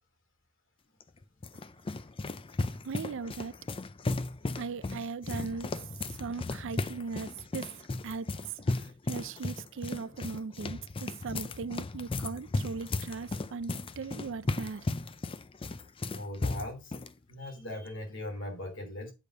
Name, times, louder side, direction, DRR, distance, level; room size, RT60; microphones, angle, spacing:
sound 1, 1.0-17.1, left 2 dB, 25° left, 0.4 m, -35 dB
voice 1, 2.8-3.5 4.6-5.7 6.2-7.7 8.0-8.3 9.1-14.9, right 5 dB, 60° right, 0.4 m, -38 dB
voice 2, 16.1-17.0 17.3-19.1, left 1 dB, 60° left, 3.3 m, -39 dB
8.4 x 5.1 x 5.4 m
head